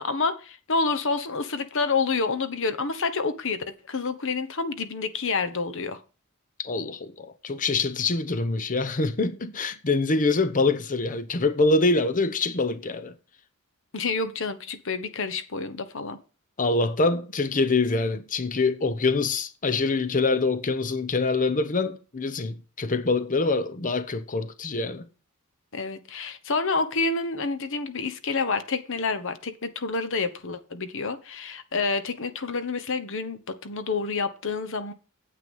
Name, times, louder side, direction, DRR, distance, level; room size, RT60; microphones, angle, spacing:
voice 1, 0.0-6.0 13.9-16.2 25.7-34.9, left 4 dB, 60° left, 1.1 m, -28 dB
voice 2, 6.6-13.1 16.6-25.0, left 3 dB, 35° left, 0.8 m, -25 dB
9.3 x 8.3 x 5.4 m
head